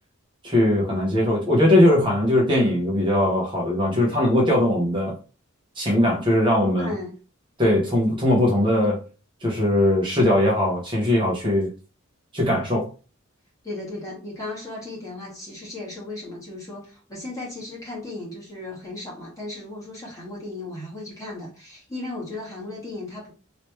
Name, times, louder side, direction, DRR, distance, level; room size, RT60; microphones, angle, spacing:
voice 1, 0.4-5.2 5.7-6.9 7.6-9.0 9.4-11.7 12.3-12.9, left 1 dB, 25° right, 1.0 m, -20 dB
voice 2, 6.8-7.1 13.6-23.3, left 2 dB, 15° left, 1.6 m, -36 dB
3.1 x 3.0 x 3.0 m
head